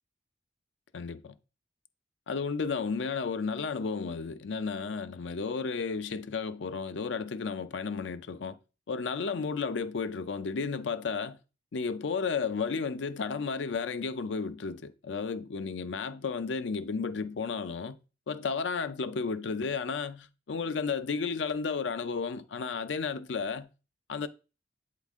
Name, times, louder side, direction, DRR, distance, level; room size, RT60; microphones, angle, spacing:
voice 1, 0.9-1.3 2.3-8.6 8.9-11.4 11.7-18.0 18.3-23.7 24.1-24.3, left 5 dB, 85° left, 0.5 m, -33 dB
8.1 x 3.8 x 3.5 m
head